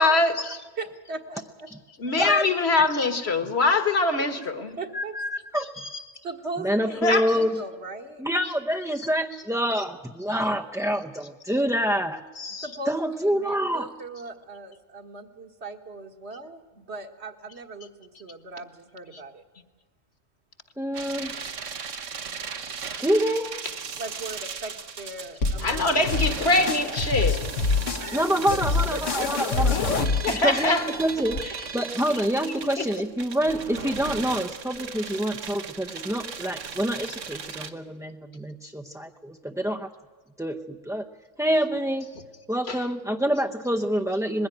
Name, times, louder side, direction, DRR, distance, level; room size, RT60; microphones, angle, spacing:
voice 1, 0.0-0.6 2.0-4.8 5.6-5.9 7.0-7.3 12.4-12.7 25.6-27.7 30.2-30.9 32.4-32.8 42.7-42.8, left 3 dB, 55° left, 1.8 m, -24 dB
voice 2, 0.8-1.7 2.1-2.2 4.8-5.1 6.2-8.3 12.6-19.4 24.0-27.0 27.8-28.4 28.9-29.7, right 2 dB, 60° right, 1.8 m, -38 dB
voice 3, 2.2-2.5 4.9-5.7 6.6-7.6 8.2-12.2 12.9-13.9 20.8-21.3 23.0-23.5 28.1-30.0 30.4-31.4 31.7-39.9 40.4-41.0 41.4-42.1 42.5-44.5, equal, 5° right, 0.5 m, -26 dB
sound 1, 20.9-37.7, right 6 dB, 75° right, 1.5 m, -37 dB
sound 2, 25.4-31.4, left 4 dB, 75° left, 1.5 m, -27 dB
21.0 x 16.0 x 9.9 m
omnidirectional pair, 1.3 m